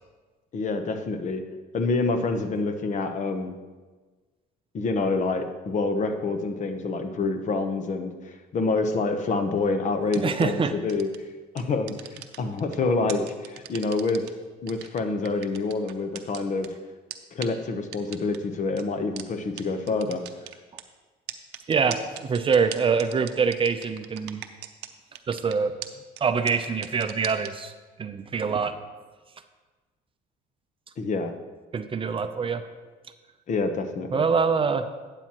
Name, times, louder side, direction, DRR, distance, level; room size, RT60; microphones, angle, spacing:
voice 1, 0.5-1.4 1.7-3.6 4.7-11.1 11.5-14.2 14.6-16.7 17.3-20.2 31.0-31.3 33.5-34.2, left 3 dB, 45° left, 7 dB, 0.9 m, -27 dB
sound 1, 10.1-10.4 10.9-11.2 11.6-12.7 13.1-14.3 14.7-16.7 17.1-17.2 17.4-17.5 17.9-18.4 18.8-18.9 19.2-19.3 19.6-19.7 19.9-20.8 21.3-24.9 25.1-25.5 25.8-25.9 26.2-26.3 26.5-27.5, right 14 dB, 85° right, 0.7 m, -38 dB
voice 2, 10.2-10.7 21.7-24.4 25.3-25.7 26.2-27.7 28.0-28.7 31.7-32.6 34.1-34.9, right 5 dB, 30° right, 8 dB, 0.6 m, -24 dB
12.0 x 8.9 x 3.0 m, 1.3 s
cardioid pair, 110°, 17 cm